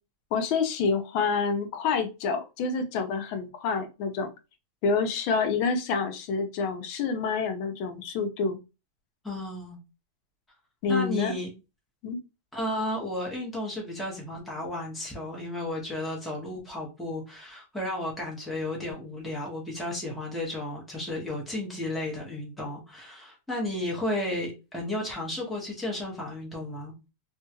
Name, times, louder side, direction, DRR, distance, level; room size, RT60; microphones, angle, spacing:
voice 1, 0.3-4.3 4.8-8.6 10.8-11.3 12.0-12.2, left 5 dB, 75° left, 6 dB, 1.4 m, -27 dB
voice 2, 9.2-9.8 10.9-11.5 12.5-26.9, left 1 dB, ahead, -3 dB, 0.4 m, -33 dB
3.5 x 2.3 x 2.9 m, 0.28 s
omnidirectional pair, 2.3 m